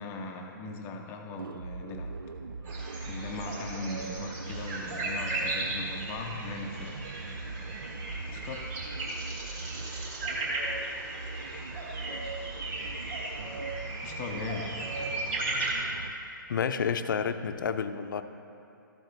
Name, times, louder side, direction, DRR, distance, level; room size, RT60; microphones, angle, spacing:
voice 1, 0.0-2.2 3.1-7.0 8.3-8.8 14.0-14.8, left 3 dB, 20° left, 4 dB, 0.5 m, -39 dB
sound 1, 1.4-16.1, right 3 dB, 85° right, 0.5 m, -41 dB
sound 2, 2.6-15.7, right 2 dB, 25° right, 1.6 m, -36 dB
voice 2, 16.5-18.2, left 6 dB, 65° left, 10 dB, 0.6 m, -30 dB
13.0 x 8.1 x 3.3 m, 2.7 s
hypercardioid pair, 145°, 11 cm